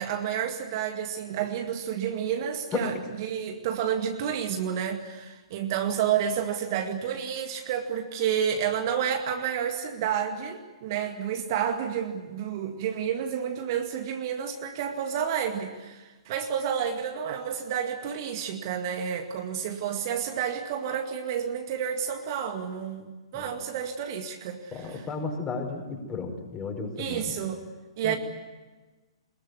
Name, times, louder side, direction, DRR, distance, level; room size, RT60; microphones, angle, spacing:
voice 1, 0.0-25.1 27.0-27.6 28.0-28.2, right 8 dB, 40° right, 5 dB, 2.1 m, -30 dB
voice 2, 24.7-27.3 28.0-28.2, left 4 dB, 20° left, 3 dB, 5.2 m, -33 dB
23.5 x 21.5 x 9.7 m, 1.2 s
figure-of-eight pair, 115°, 3 cm